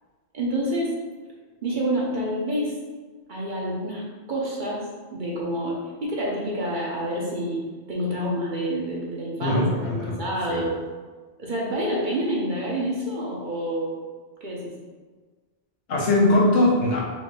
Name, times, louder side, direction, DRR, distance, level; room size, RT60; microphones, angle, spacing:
voice 1, 0.3-0.9 1.6-2.8 3.3-4.0 4.3-4.8 5.1-7.6 7.9-10.8 11.4-14.0 14.4-14.7, equal, 50° right, -4 dB, 0.9 m, -28 dB
voice 2, 9.4-10.2 10.5-10.7 15.9-17.0, left 1 dB, 80° left, -3 dB, 1.2 m, -21 dB
4.4 x 2.6 x 3.2 m, 1.4 s
omnidirectional pair, 1.2 m